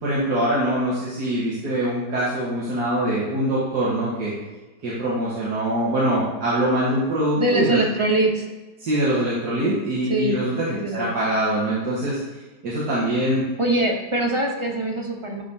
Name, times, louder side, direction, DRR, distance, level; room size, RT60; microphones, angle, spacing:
voice 1, 0.0-4.3 4.8-7.8 8.8-10.6 10.9-12.2 12.6-13.4, right 1 dB, 80° right, -8 dB, 2.2 m, -23 dB
voice 2, 7.4-8.5 10.1-10.4 10.7-11.1 13.6-15.4, right 2 dB, 25° right, 0 dB, 0.7 m, -23 dB
11.5 x 5.2 x 2.8 m, 1.2 s
omnidirectional pair, 1.7 m